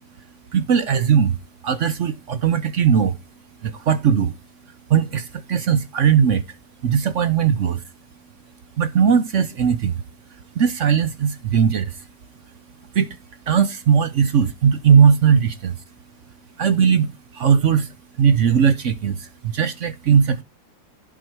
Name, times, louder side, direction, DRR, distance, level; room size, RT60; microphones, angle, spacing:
voice 1, 0.2-3.2 3.6-4.4 4.6-6.6 6.8-7.8 8.8-10.0 10.3-12.1 12.8-13.2 13.5-15.8 16.6-20.4, right 7 dB, 55° right, 0.9 m, -19 dB
11.0 x 4.9 x 4.5 m
omnidirectional pair, 1.8 m